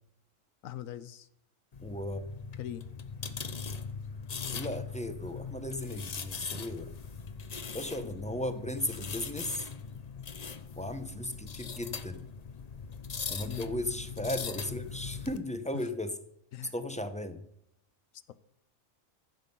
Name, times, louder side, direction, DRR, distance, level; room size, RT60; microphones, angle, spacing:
voice 1, 0.6-1.3 2.6-2.9 13.5-13.7 15.7-15.8 16.5-16.7, left 12 dB, 85° left, 14 dB, 1.1 m, -40 dB
sound 1, 1.7-15.4, left 5 dB, 40° left, 0.7 m, -40 dB
voice 2, 1.8-2.3 4.5-6.9 7.7-9.7 10.8-12.2 13.3-16.2 16.7-17.4, left 1 dB, 5° left, 9 dB, 0.7 m, -36 dB
15.0 x 7.5 x 5.5 m, 0.74 s
omnidirectional pair, 1.4 m